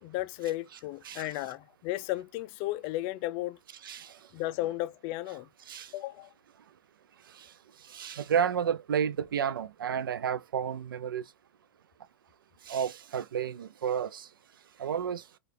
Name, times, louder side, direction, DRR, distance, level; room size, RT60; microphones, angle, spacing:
voice 1, 0.0-3.6 4.3-5.5 5.9-6.3, left 16 dB, 40° left, 0.3 m, -34 dB
voice 2, 3.8-4.2 5.7-5.9 7.3-7.5 7.8-11.2 12.7-14.3 14.8-15.2, right 8 dB, 85° right, 0.5 m, -31 dB
4.6 x 2.4 x 3.2 m
hypercardioid pair, 125°, 11 cm